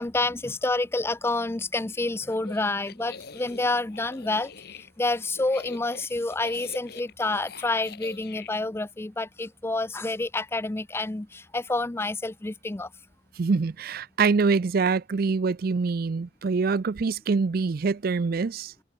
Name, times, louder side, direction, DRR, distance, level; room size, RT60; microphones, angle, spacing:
voice 1, 0.0-4.5 5.0-12.9, left 2 dB, 15° left, 0.4 m, -28 dB
sound 1, 2.3-8.5, left 5 dB, 55° left, 1.3 m, -44 dB
voice 2, 13.4-18.7, right 4 dB, 50° right, 0.4 m, -25 dB
head